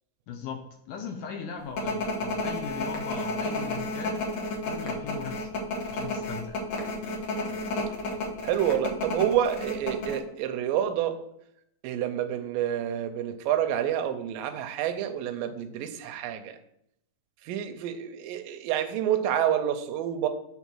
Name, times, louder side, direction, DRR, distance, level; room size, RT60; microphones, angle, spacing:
voice 1, 0.3-4.2 4.6-5.6 5.9-6.6, left 5 dB, 75° left, 3 dB, 2.1 m, -38 dB
sound 1, 1.8-10.2, left 2 dB, 55° left, 1.8 m, -31 dB
voice 2, 8.4-11.2 11.8-16.6 17.5-20.3, right 10 dB, 80° right, 8 dB, 2.2 m, -28 dB
7.2 x 3.6 x 6.1 m, 0.75 s
omnidirectional pair, 4.2 m